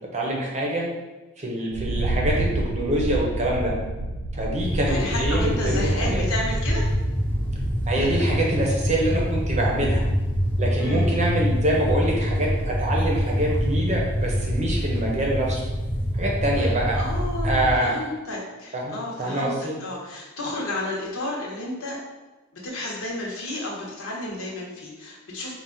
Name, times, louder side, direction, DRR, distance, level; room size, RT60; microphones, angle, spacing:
voice 1, 0.1-0.8 1.4-3.7 4.3-6.3 7.9-10.0 10.6-15.6 16.1-17.0 17.4-17.9 18.7-19.8, right 1 dB, 30° right, -2 dB, 0.8 m, -25 dB
Thunder, 1.7-7.2, right 2 dB, 90° right, 0.6 m, -29 dB
sound 1, 4.6-17.7, equal, 10° left, 0.5 m, -25 dB
voice 2, 4.9-6.9 7.9-8.2 10.8-11.1 16.6-22.0 22.5-25.5, left 2 dB, 65° left, -3 dB, 1.1 m, -32 dB
4.4 x 2.4 x 3.8 m, 1.2 s
head